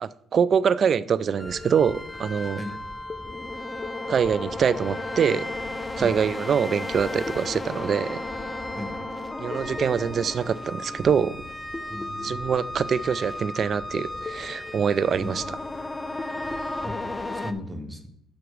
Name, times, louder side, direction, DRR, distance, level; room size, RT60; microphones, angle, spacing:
voice 1, 0.0-2.6 4.1-5.5 6.0-8.2 9.4-11.4 12.2-15.4, right 7 dB, 50° right, 18 dB, 0.3 m, -24 dB
sound 1, 1.4-17.5, left 2 dB, 15° left, 0.5 m, -34 dB
voice 2, 11.9-12.4 15.2-15.3 16.8-17.0 17.3-18.1, left 1 dB, 10° right, 5 dB, 1.0 m, -35 dB
6.2 x 5.8 x 4.9 m, 0.75 s
cardioid pair, 90°, 0 cm